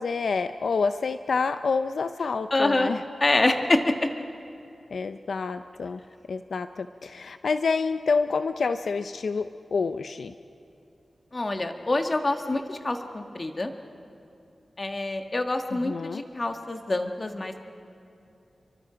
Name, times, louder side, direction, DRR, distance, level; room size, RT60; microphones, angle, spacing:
voice 1, 0.0-3.0 4.9-6.0 6.3-10.3 15.7-16.2, left 4 dB, 75° left, 10 dB, 0.6 m, -28 dB
voice 2, 2.5-2.9 3.2-4.1 11.3-13.7 14.8-17.6, left 2 dB, 30° left, 5 dB, 1.7 m, -26 dB
29.5 x 24.0 x 5.1 m, 2.7 s
wide cardioid pair, 125°, 0 cm